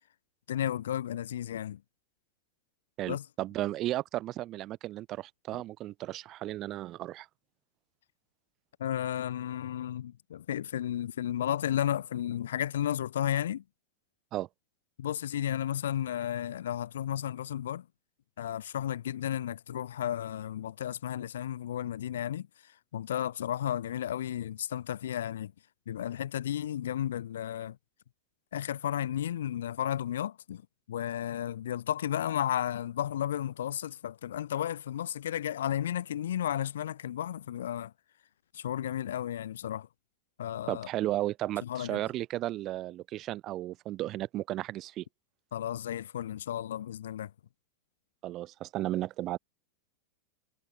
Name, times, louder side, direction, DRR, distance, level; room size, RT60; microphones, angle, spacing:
voice 1, 0.5-1.8 3.1-3.2 8.8-13.6 15.0-17.8 18.4-22.5 22.9-25.5 25.9-27.8 28.5-30.6 30.9-37.9 38.5-39.9 40.4-40.9 41.6-42.0 45.5-47.3, left 11 dB, 75° left, 0.7 m, -33 dB
voice 2, 3.0-7.3 14.3-14.5 40.7-45.0 48.2-49.4, right 15 dB, 40° right, 3.0 m, -34 dB
hypercardioid pair, 100°, 0 cm